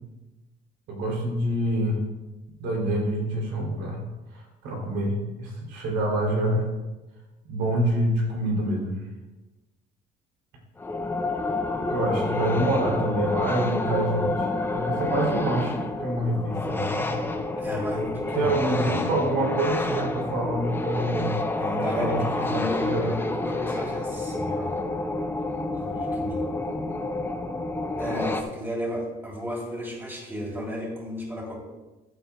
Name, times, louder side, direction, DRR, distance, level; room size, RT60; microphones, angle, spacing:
voice 1, 0.9-2.0 2.6-4.0 4.3-6.7 7.5-9.0 11.9-17.2 18.3-21.3 21.7-22.3 22.5-23.0, right 1 dB, 90° right, -1 dB, 3.2 m, -27 dB
sound 1, 10.8-28.4, left 2 dB, 15° left, 0.7 m, -29 dB
voice 2, 17.6-18.5 18.9-19.1 21.6-24.7 25.8-26.5 28.0-31.6, equal, 15° right, -3 dB, 3.3 m, -33 dB
14.0 x 8.7 x 2.3 m, 1.1 s
cardioid pair, 110°, 17 cm